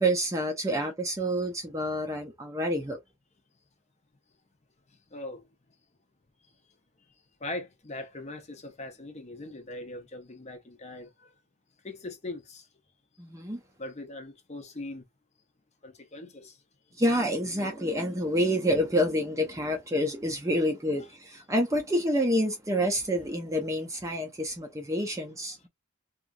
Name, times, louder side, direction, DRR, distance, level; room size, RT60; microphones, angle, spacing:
voice 1, 0.0-3.0 13.2-13.6 17.0-25.6, equal, 15° right, 0.5 m, -28 dB
voice 2, 5.1-5.4 7.4-11.3 11.8-12.7 13.8-15.0 15.8-16.6, left 2 dB, 30° left, 0.6 m, -40 dB
2.8 x 2.4 x 2.5 m
head